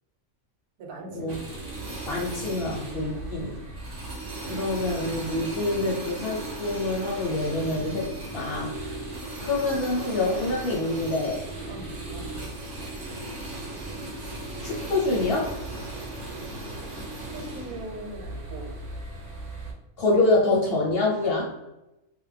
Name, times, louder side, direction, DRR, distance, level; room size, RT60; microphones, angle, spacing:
voice 1, 0.8-1.5 3.0-3.3 11.7-12.8 17.3-18.7, right 1 dB, 90° right, 1 dB, 1.2 m, -41 dB
sound 1, 1.3-19.7, right 2 dB, 60° right, 1.0 m, -36 dB
voice 2, 2.1-3.5 4.4-8.1 8.3-8.9 9.4-11.4 14.6-15.5 20.0-21.5, left 2 dB, 55° left, -3 dB, 0.7 m, -26 dB
2.4 x 2.2 x 3.2 m, 0.95 s
omnidirectional pair, 1.5 m